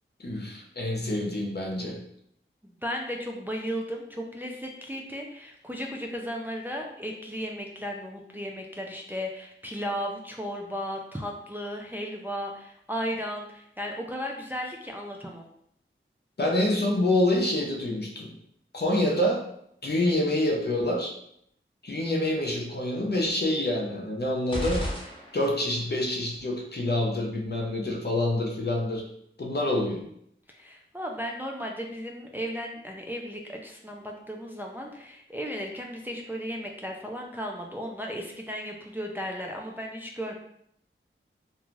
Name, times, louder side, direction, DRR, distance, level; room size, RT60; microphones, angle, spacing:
voice 1, 0.2-2.0 16.4-18.3 18.7-19.5 19.8-21.2 21.8-24.9 25.3-29.0 29.4-30.1, left 1 dB, 50° left, 0 dB, 0.7 m, -27 dB
voice 2, 2.6-15.5 30.5-40.4, equal, 10° right, 0 dB, 0.4 m, -35 dB
sound 1, 24.5-25.8, left 1 dB, 25° left, 0.9 m, -33 dB
2.5 x 2.3 x 3.1 m, 0.71 s
wide cardioid pair, 45°, 21 cm